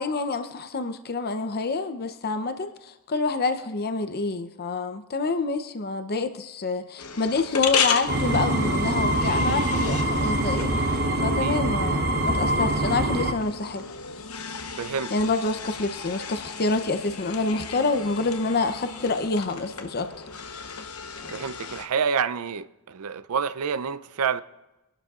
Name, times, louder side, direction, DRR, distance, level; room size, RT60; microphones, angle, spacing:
voice 1, 0.0-10.7 11.2-13.9 15.1-20.1, left 3 dB, 45° left, 0.7 m, -27 dB
sound 1, 7.0-21.9, left 6 dB, 75° left, 1.0 m, -34 dB
sound 2, 8.1-13.3, right 1 dB, 50° right, 0.8 m, -24 dB
voice 2, 14.8-15.1 21.3-24.4, right 6 dB, 90° right, 0.5 m, -28 dB
25.5 x 12.0 x 2.4 m
head